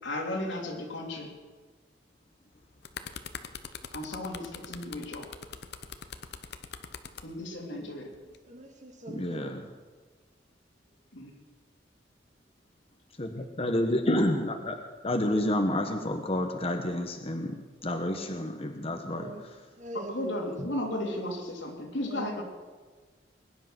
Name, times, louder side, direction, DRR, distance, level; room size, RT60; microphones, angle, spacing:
voice 1, 0.0-1.3 3.9-5.3 7.2-8.1 11.1-11.3 19.9-22.4, left 1 dB, 85° left, -1 dB, 3.4 m, -35 dB
sound 1, 2.5-7.3 8.1-8.4, left 6 dB, 60° left, 1.0 m, -42 dB
voice 2, 7.6-8.0 8.3-9.5 18.2-18.5 19.1-19.5 19.8-20.7 21.0-21.5 22.1-22.4, right 2 dB, 40° right, 3 dB, 2.0 m, -43 dB
voice 3, 9.1-9.7 13.2-14.8 15.0-17.6 17.8-19.5 20.6-20.7, left 1 dB, 35° left, 4 dB, 1.2 m, -29 dB
22.0 x 10.5 x 6.1 m, 1.4 s
head